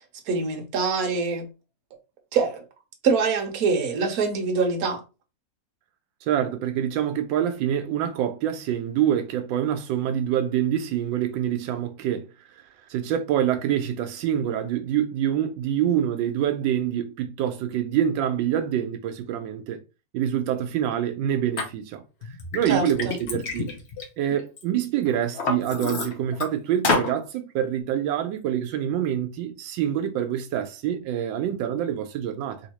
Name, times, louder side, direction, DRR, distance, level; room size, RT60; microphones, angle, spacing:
voice 1, 0.3-1.5 2.3-2.6 3.0-5.0 22.7-23.2, right 4 dB, 60° right, 1.2 m, -24 dB
voice 2, 6.2-12.6 12.9-19.8 20.1-22.0 22.5-23.7 24.2-32.6, right 10 dB, 85° right, 1.3 m, -26 dB
Liquid, 21.6-21.7 22.2-24.6 25.0-26.5 26.8-27.1, left 4 dB, 50° left, 0.8 m, -28 dB
3.4 x 2.8 x 2.9 m
omnidirectional pair, 2.0 m